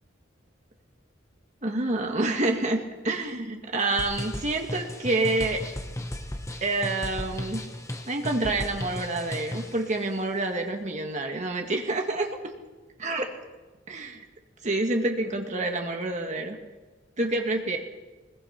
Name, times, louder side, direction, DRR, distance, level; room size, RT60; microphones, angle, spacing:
voice 1, 1.6-2.8 3.0-5.6 6.6-7.6 8.1-12.3 13.0-13.3 13.9-14.2 14.6-16.6 17.2-17.8, right 2 dB, 40° right, 3 dB, 1.9 m, -27 dB
sound 1, 4.0-9.8, left 1 dB, 15° left, 1.4 m, -35 dB
22.5 x 21.0 x 5.9 m, 1.2 s
head